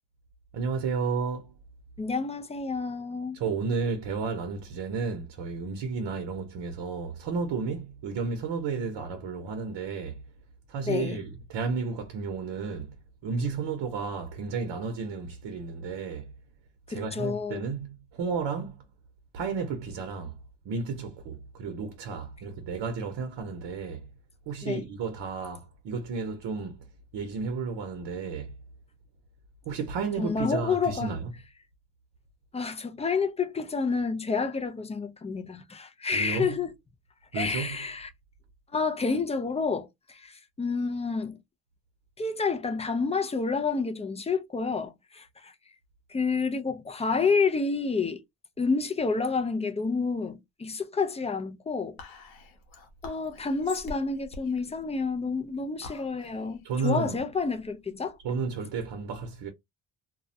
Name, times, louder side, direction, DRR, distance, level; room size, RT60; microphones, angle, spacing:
voice 1, 0.5-1.5 3.3-10.2 10.7-12.9 13.2-16.3 16.9-18.9 19.3-20.4 20.6-24.1 24.5-26.9 27.1-28.5 29.7-31.3 36.1-36.6 37.3-37.8 56.6-57.2 58.2-59.5, right 5 dB, 65° right, 0.7 m, -32 dB
voice 2, 2.0-3.4 10.9-11.2 16.9-17.7 24.6-24.8 30.2-31.2 32.5-36.7 37.3-38.1 38.7-41.4 42.2-45.5 46.1-48.2 48.6-52.0 53.0-58.2, left 4 dB, 15° left, 0.3 m, -29 dB
Whispering, 52.0-58.6, left 2 dB, 75° left, 1.0 m, -47 dB
2.3 x 2.0 x 2.6 m
cardioid pair, 90°, 47 cm